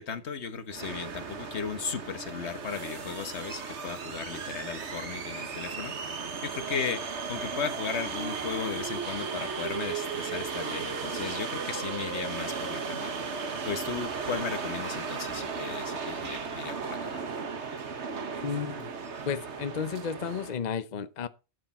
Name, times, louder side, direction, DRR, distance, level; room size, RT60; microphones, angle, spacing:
voice 1, 0.0-13.4 13.6-17.3, left 6 dB, 80° left, 1.5 m, -36 dB
sound 1, 0.7-20.6, right 5 dB, 90° right, 1.6 m, -35 dB
voice 2, 18.4-18.9 19.3-21.3, left 7 dB, 45° left, 0.8 m, -33 dB
13.0 x 8.1 x 4.2 m
omnidirectional pair, 1.1 m